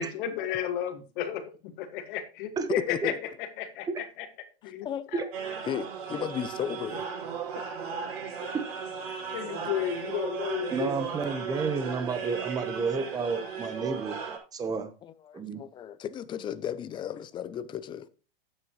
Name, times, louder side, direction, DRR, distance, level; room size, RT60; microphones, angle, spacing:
voice 1, 0.0-1.4 1.8-4.3 4.6-5.3 8.4-8.5 9.1-10.9, left 9 dB, 55° left, 2.0 m, -33 dB
voice 2, 2.9-3.2 4.8-5.1 5.7-7.1 7.5-7.6 15.0-18.1, left 9 dB, 15° left, 0.5 m, -35 dB
sound 1, 5.3-14.4, right 6 dB, 90° right, 5.9 m, -36 dB
voice 3, 10.7-14.2 14.5-14.9 15.3-15.6, right 4 dB, 10° right, 1.0 m, -31 dB
12.0 x 9.1 x 3.1 m
supercardioid pair, 155°, 29 cm